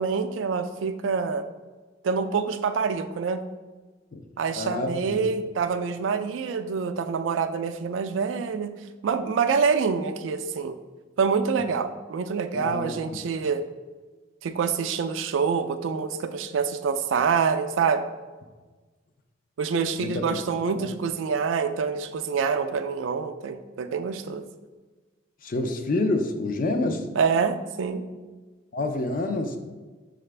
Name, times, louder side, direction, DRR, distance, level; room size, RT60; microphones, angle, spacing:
voice 1, 0.0-1.5 2.0-3.4 4.4-8.7 9.0-10.8 11.2-13.6 14.4-18.1 19.6-24.5 27.2-28.0, right 5 dB, 85° right, 9 dB, 0.4 m, -26 dB
voice 2, 4.5-5.2 12.5-13.2 20.0-20.3 20.7-20.9 25.4-27.1 28.7-29.6, left 2 dB, 45° left, 6 dB, 0.4 m, -28 dB
6.5 x 2.4 x 3.2 m, 1.3 s
head